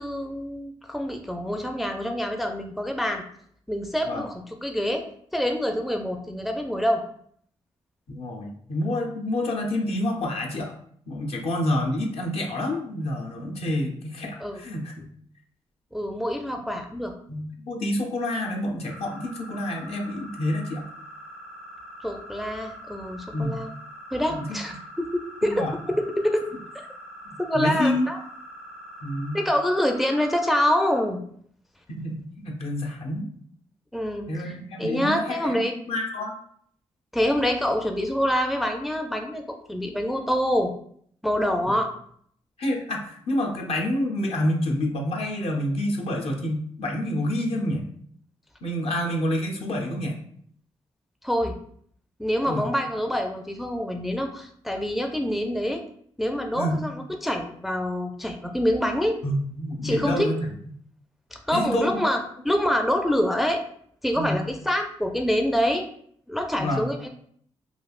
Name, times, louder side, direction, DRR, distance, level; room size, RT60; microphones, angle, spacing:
voice 1, 0.0-3.2 3.7-5.0 5.3-7.0 14.4-14.6 15.9-17.1 22.0-23.7 24.1-25.7 26.2-26.9 27.4-28.2 29.3-31.2 33.9-34.5 34.8-35.7 37.1-40.7 41.2-41.9 51.2-51.5 52.2-55.8 56.2-59.2 59.8-60.3 61.3-62.2 62.4-63.6 64.0-65.9 66.3-67.1, equal, ahead, 4 dB, 0.4 m, -26 dB
voice 2, 8.1-10.7 11.1-15.1 17.3-20.9 23.3-23.6 24.3-24.6 25.5-25.7 27.2-28.1 29.0-29.4 31.9-33.3 34.3-35.5 35.9-36.3 41.7-41.8 42.6-47.8 48.6-50.2 52.5-52.7 56.5-56.8 59.2-60.4 61.5-62.1 64.1-64.4 66.6-66.9, left 1 dB, 60° left, 1 dB, 0.7 m, -28 dB
sound 1, 18.9-31.0, equal, 90° left, 1.1 m, -43 dB
3.2 x 2.4 x 2.4 m, 0.63 s
supercardioid pair, 50°, 12 cm